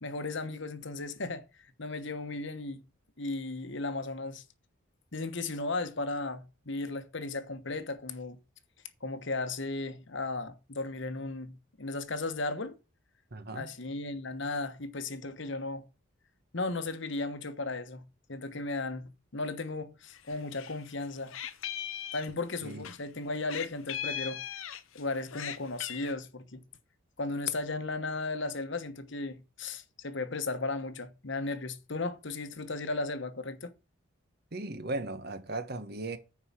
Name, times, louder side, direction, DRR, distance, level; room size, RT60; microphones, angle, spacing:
voice 1, 0.0-2.8 3.2-4.4 5.1-8.4 9.0-12.7 13.5-15.9 16.5-21.4 22.1-24.4 24.9-26.6 27.2-33.7, left 3 dB, 60° left, 1.2 m, -35 dB
voice 2, 13.3-13.7 22.6-22.9 34.5-36.2, right 2 dB, 50° right, 1.2 m, -37 dB
Meow, 20.1-20.8 21.0-23.0 23.5-25.0 25.3-26.1, left 10 dB, 75° left, 0.8 m, -38 dB
9.6 x 4.8 x 7.3 m
head